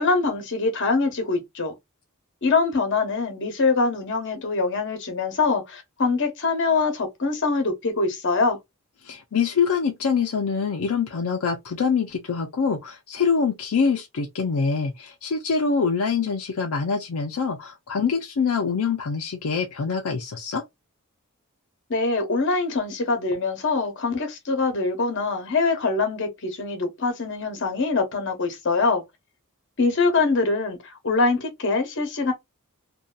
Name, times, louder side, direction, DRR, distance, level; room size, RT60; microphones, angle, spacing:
voice 1, 0.0-1.7 2.4-8.6 21.9-29.0 29.8-32.3, left 3 dB, 55° left, 0.9 m, -24 dB
voice 2, 9.0-20.6, left 5 dB, 80° left, 0.5 m, -25 dB
2.7 x 2.2 x 2.2 m
head